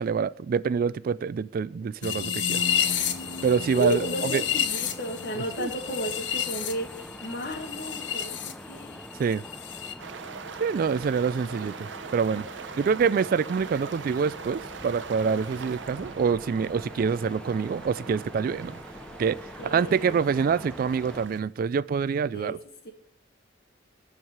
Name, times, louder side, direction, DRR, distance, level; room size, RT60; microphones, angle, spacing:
voice 1, 0.0-2.6 3.4-4.4 5.6-5.7 9.2-9.4 10.6-12.5 12.8-18.8 19.2-19.4 19.6-22.6, right 6 dB, 50° right, 0.3 m, -26 dB
sound 1, 2.0-8.5 8.8-9.9, left 9 dB, 75° left, 1.0 m, -30 dB
sound 2, 2.5-21.2, equal, 5° left, 0.5 m, -44 dB
voice 2, 3.7-9.0 19.6-20.2 22.3-22.6 22.8-22.9, equal, 55° left, 1.9 m, -33 dB
sound 3, 10.0-21.4, right 5 dB, 80° right, 0.7 m, -42 dB
12.0 x 4.7 x 7.3 m
head